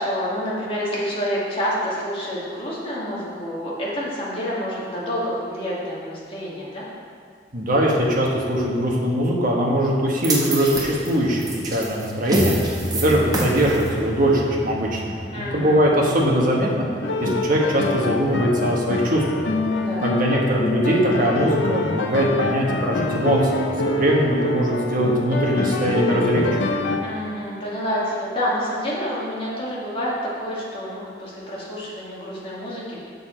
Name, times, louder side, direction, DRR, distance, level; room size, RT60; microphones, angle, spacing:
voice 1, 0.0-6.8 15.3-15.8 19.8-20.0 27.0-30.1 30.4-33.0, equal, 30° left, -7 dB, 1.9 m, -28 dB
voice 2, 7.5-16.8 17.2-19.4 20.0-26.5, equal, 50° right, -2 dB, 1.2 m, -21 dB
sound 1, 10.2-16.5, right 1 dB, 20° right, 1.1 m, -28 dB
sound 2, 17.0-27.0, left 2 dB, 80° left, 0.7 m, -25 dB
6.8 x 6.7 x 4.4 m, 2.1 s
head